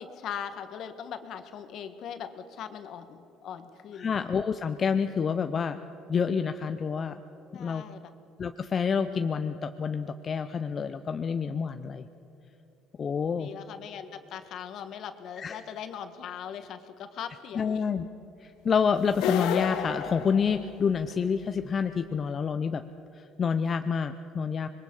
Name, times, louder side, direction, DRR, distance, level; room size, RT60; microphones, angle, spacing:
voice 1, 0.0-4.1 7.5-8.1 13.3-17.8, left 8 dB, 60° left, 9 dB, 1.5 m, -40 dB
voice 2, 4.0-5.8 6.1-7.2 7.6-7.8 8.4-12.0 13.0-13.5 15.4-15.6 17.6-18.1 18.4-22.8 23.1-24.7, left 6 dB, 35° left, 8 dB, 0.6 m, -28 dB
sound 1, 19.1-21.1, left 9 dB, 80° left, 1.1 m, -31 dB
25.5 x 22.0 x 5.5 m, 2.9 s
cardioid pair, 115°, 0 cm